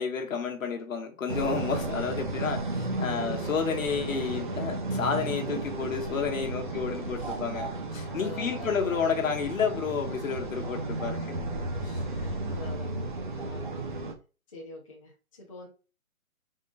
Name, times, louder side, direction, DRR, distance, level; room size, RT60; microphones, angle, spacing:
voice 1, 0.0-11.4, left 6 dB, 65° left, 1.1 m, -31 dB
sound 1, 1.3-14.1, right 2 dB, 35° right, 0.5 m, -34 dB
voice 2, 6.3-7.4 7.7-7.8 8.1-9.1 10.9-13.6 14.5-15.7, left 2 dB, 25° left, 0.5 m, -45 dB
3.6 x 2.1 x 3.8 m
hypercardioid pair, 155°, 43 cm